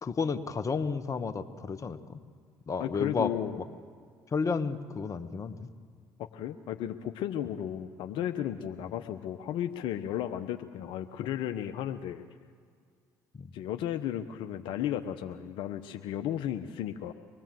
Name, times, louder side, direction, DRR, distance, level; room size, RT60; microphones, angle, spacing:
voice 1, 0.0-2.2 2.7-3.6 4.3-5.7 13.4-13.5, left 5 dB, 35° left, 8 dB, 1.6 m, -32 dB
voice 2, 2.8-3.6 6.2-12.3 13.5-17.1, left 10 dB, 65° left, 6 dB, 1.0 m, -34 dB
24.5 x 20.0 x 7.8 m, 2.1 s
hypercardioid pair, 60°, 9 cm